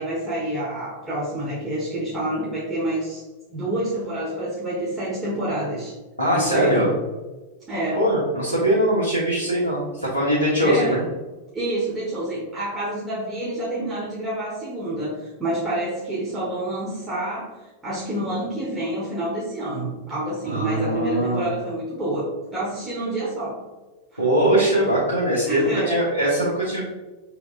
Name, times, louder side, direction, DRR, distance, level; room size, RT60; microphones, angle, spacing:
voice 1, 0.0-3.2 3.5-6.0 6.3-6.8 7.7-8.0 10.6-11.0 11.5-23.6 24.1-24.3 25.4-26.0, right 1 dB, 15° right, -8 dB, 1.3 m, -28 dB
voice 2, 6.2-6.9 7.9-11.0 20.4-21.5 24.2-26.8, right 1 dB, 90° right, -8 dB, 1.2 m, -21 dB
5.9 x 3.4 x 2.5 m, 1.2 s
figure-of-eight pair, 90°, 0 cm